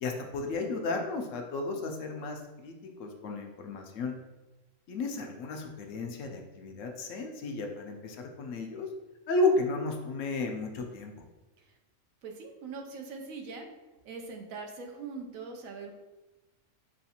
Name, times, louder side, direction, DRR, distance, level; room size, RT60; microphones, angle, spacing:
voice 1, 0.0-4.1 4.9-8.9 9.3-11.2, left 3 dB, 70° left, 3 dB, 0.9 m, -33 dB
voice 2, 12.2-13.7 14.0-15.9, right 4 dB, 80° right, 3 dB, 1.0 m, -42 dB
6.4 x 2.5 x 2.7 m, 1.1 s
omnidirectional pair, 1.4 m